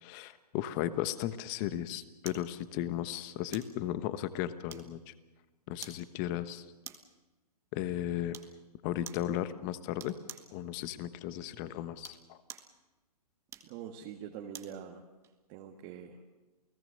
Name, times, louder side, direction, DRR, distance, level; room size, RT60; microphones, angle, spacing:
voice 1, 0.0-5.1 5.7-6.6 7.7-8.4 8.8-10.1 10.5-12.4, left 12 dB, 30° left, 13 dB, 1.1 m, -35 dB
sound 1, 2.3-2.5 3.5-3.8 4.7-5.1 5.8-6.1 6.8-7.2 8.3-8.6 9.1-9.3 10.0-10.5 11.9-12.7 13.5-14.8 15.2-15.4, right 8 dB, 15° right, 1.3 m, -48 dB
voice 2, 13.6-15.0 15.5-16.2, right 8 dB, 30° right, 2 dB, 1.7 m, -44 dB
29.0 x 18.0 x 6.7 m, 1.2 s
hypercardioid pair, 140°, 21 cm